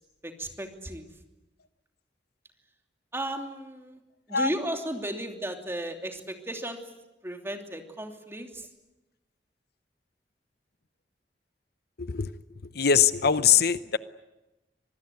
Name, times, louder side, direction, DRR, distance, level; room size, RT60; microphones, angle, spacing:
voice 1, 0.2-1.1 3.1-4.0 4.3-6.8 7.2-8.7, right 1 dB, 15° right, 4 dB, 2.9 m, -35 dB
voice 2, 12.0-12.4 12.7-14.0, left 7 dB, 60° left, 13 dB, 0.8 m, -22 dB
25.5 x 19.5 x 9.5 m, 1.0 s
head